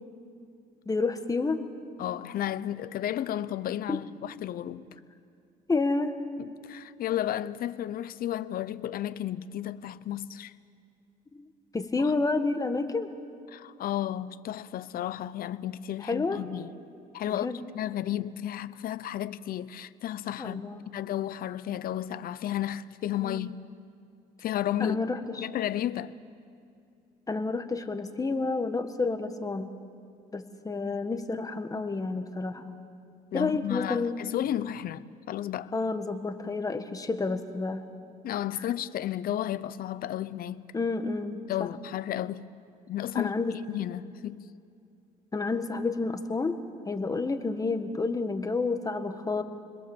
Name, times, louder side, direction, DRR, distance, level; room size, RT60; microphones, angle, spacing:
voice 1, 0.9-1.6 3.9-4.0 5.7-6.2 11.3-11.5 11.7-13.1 16.1-16.4 17.3-17.6 20.4-20.9 23.2-23.4 24.8-25.5 27.3-29.7 30.3-32.7 33.3-34.2 35.7-37.8 40.7-41.7 43.1-43.6 45.3-46.6 46.8-49.4, left 3 dB, 20° left, 1.5 m, -30 dB
voice 2, 2.0-4.9 6.4-10.5 12.0-12.1 13.5-16.7 17.1-17.5 17.7-23.6 24.4-25.0 25.3-26.1 33.3-35.7 38.2-40.6 41.5-42.5 42.9-44.5, left 12 dB, 60° left, 0.8 m, -33 dB
30.0 x 21.5 x 7.2 m
cardioid pair, 110°, 17 cm